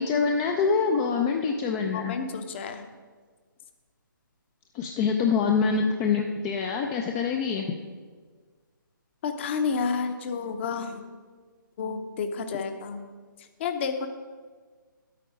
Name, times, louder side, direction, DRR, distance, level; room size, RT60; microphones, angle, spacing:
voice 1, 0.0-2.1 4.7-7.7, left 5 dB, 15° left, 3 dB, 0.4 m, -25 dB
voice 2, 1.9-2.9 9.2-11.0 11.8-13.1 13.6-14.1, left 5 dB, 35° left, 7 dB, 0.9 m, -30 dB
9.9 x 8.6 x 5.0 m, 1.5 s
figure-of-eight pair, 145°, 11 cm